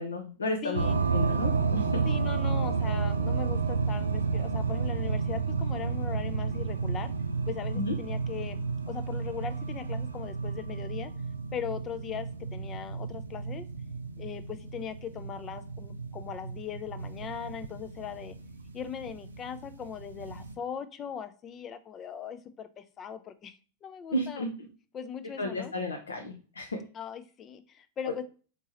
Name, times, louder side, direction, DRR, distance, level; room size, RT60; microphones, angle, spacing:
voice 1, 0.0-1.9 7.7-8.0 24.1-24.7 25.4-26.8 28.1-28.2, left 1 dB, 80° left, 3 dB, 0.7 m, -33 dB
voice 2, 0.6-1.0 2.1-7.1 7.5-8.6 8.9-11.1 11.5-13.7 14.2-18.4 18.7-24.4 24.9-25.7 26.9-28.2, left 8 dB, 30° left, 12 dB, 0.5 m, -39 dB
sound 1, 0.7-20.5, right 5 dB, 80° right, 0.5 m, -31 dB
4.5 x 2.9 x 3.0 m, 0.37 s
figure-of-eight pair, 90°, 0 cm